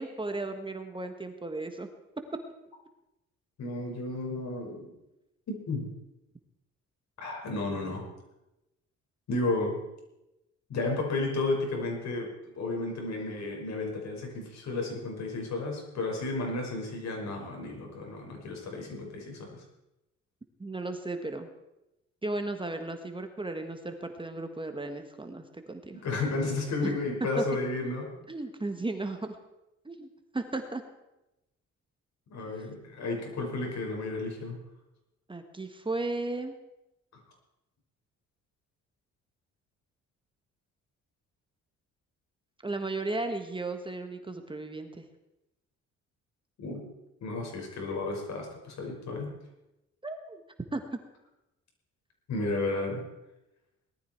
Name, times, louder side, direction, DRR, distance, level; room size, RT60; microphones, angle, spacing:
voice 1, 0.0-1.9 20.6-21.5 22.2-26.0 26.8-26.9 27.4-27.5 28.3-29.4 29.8-30.1 30.3-30.8 32.4-32.6 35.3-36.5 42.6-45.1 50.0-50.4 50.7-50.8, right 2 dB, 15° right, 6 dB, 1.6 m, -35 dB
voice 2, 3.6-4.9 5.5-5.9 7.2-8.0 9.3-9.8 10.7-12.3 12.6-19.6 25.9-28.1 32.3-34.6 46.6-46.8 47.2-49.3 52.3-53.0, left 2 dB, 65° left, 1 dB, 5.6 m, -32 dB
19.0 x 13.0 x 4.6 m, 0.94 s
cardioid pair, 90°, 30 cm